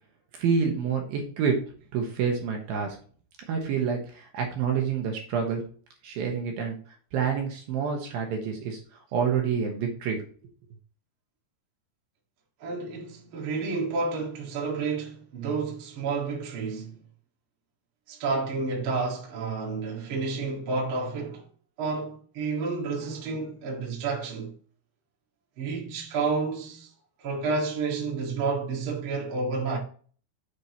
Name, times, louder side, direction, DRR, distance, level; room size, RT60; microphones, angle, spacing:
voice 1, 0.3-1.6 1.9-3.0 3.5-5.6 6.0-6.8 7.1-8.8 9.1-10.2, right 6 dB, 70° right, 2.6 m, -27 dB
voice 2, 12.6-16.9 18.1-21.5 21.8-24.5 25.6-26.9 27.2-29.8, right 4 dB, 50° right, 1.6 m, -30 dB
7.9 x 6.2 x 2.9 m
omnidirectional pair, 5.0 m